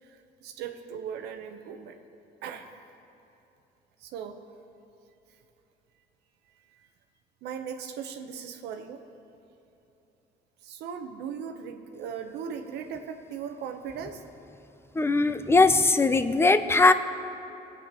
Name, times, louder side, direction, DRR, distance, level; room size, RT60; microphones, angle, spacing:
voice 1, 0.0-2.0 2.4-2.7 4.0-4.4 6.7-6.9 7.4-9.0 10.6-14.2, right 7 dB, 80° right, 6 dB, 0.9 m, -38 dB
voice 2, 14.9-16.9, left 3 dB, 15° left, 11 dB, 0.5 m, -20 dB
21.5 x 8.6 x 3.0 m, 2.9 s
cardioid pair, 110°, 17 cm